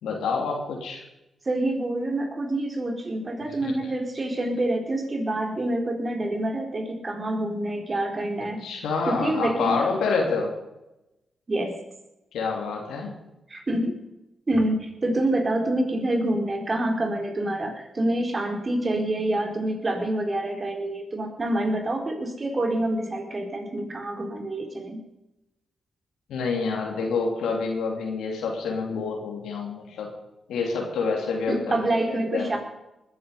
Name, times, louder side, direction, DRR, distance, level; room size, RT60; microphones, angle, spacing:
voice 1, 0.0-1.0 3.6-3.7 8.6-10.5 12.3-13.2 26.3-30.1 30.5-31.8 32.1-32.5, left 4 dB, 80° left, 1 dB, 2.7 m, -27 dB
voice 2, 1.5-8.7 9.1-9.8 11.5-11.8 13.5-14.0 14.5-25.0 31.5-32.6, right 1 dB, 40° right, 3 dB, 4.1 m, -27 dB
20.5 x 10.0 x 5.5 m, 0.95 s
supercardioid pair, 45°, 0 cm